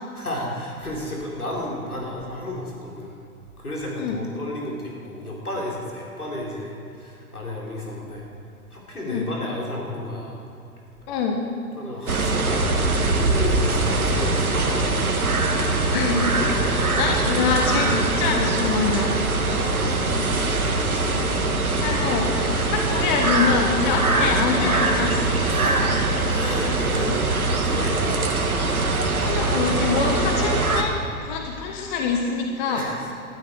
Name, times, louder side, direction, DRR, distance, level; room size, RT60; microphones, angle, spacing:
voice 1, 0.1-3.2 3.6-8.3 8.7-10.5 11.8-15.0 16.3-16.7 17.3-17.5 17.8-17.9 19.5-20.8 25.5-28.6 32.6-33.1, left 1 dB, 80° left, -3 dB, 4.4 m, -33 dB
voice 2, 11.1-11.4 15.9-16.4 16.7-19.2 21.2-21.3 21.8-25.4 28.6-28.7 29.2-31.0 31.2-32.8, left 5 dB, 30° left, 2 dB, 1.3 m, -25 dB
sound 1, 12.1-30.8, right 2 dB, 75° right, 1.7 m, -22 dB
19.5 x 12.5 x 4.7 m, 2.7 s
figure-of-eight pair, 110°, 44 cm